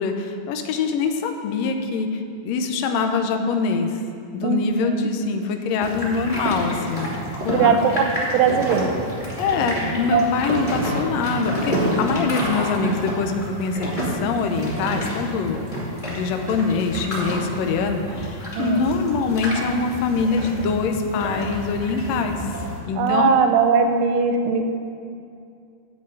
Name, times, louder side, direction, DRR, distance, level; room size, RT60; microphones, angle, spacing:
voice 1, 0.0-4.0 4.3-7.1 7.4-7.8 9.4-22.4 22.9-23.3, left 4 dB, 85° left, 5 dB, 1.5 m, -24 dB
voice 2, 4.4-5.1 7.5-8.0 8.3-8.9 10.1-10.2 18.6-18.8 23.0-24.7, right 6 dB, 75° right, 5 dB, 1.9 m, -19 dB
sound 1, 5.8-22.8, equal, 15° left, 1.8 m, -29 dB
9.3 x 5.0 x 7.9 m, 2.4 s
omnidirectional pair, 3.9 m